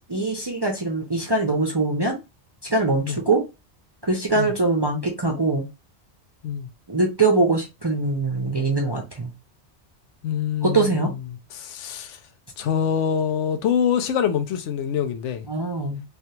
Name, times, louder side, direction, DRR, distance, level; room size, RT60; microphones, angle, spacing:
voice 1, 0.0-2.2 2.7-3.4 4.0-5.7 6.9-9.3 10.6-11.1 15.5-16.0, right 3 dB, 35° right, 0.4 m, -22 dB
voice 2, 10.2-11.1 11.5-12.2 12.6-15.4, left 8 dB, 85° left, 0.9 m, -25 dB
3.3 x 2.3 x 2.8 m
omnidirectional pair, 1.2 m